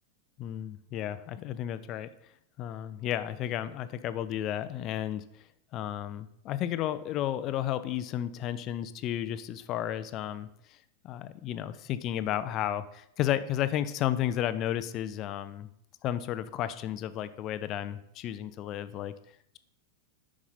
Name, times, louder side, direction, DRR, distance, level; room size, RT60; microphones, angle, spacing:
voice 1, 0.4-2.1 2.6-5.2 5.7-10.8 11.0-15.7 16.0-19.1, left 11 dB, 35° left, 13 dB, 0.6 m, -33 dB
9.7 x 6.1 x 4.1 m, 0.74 s
figure-of-eight pair, 90°, 0 cm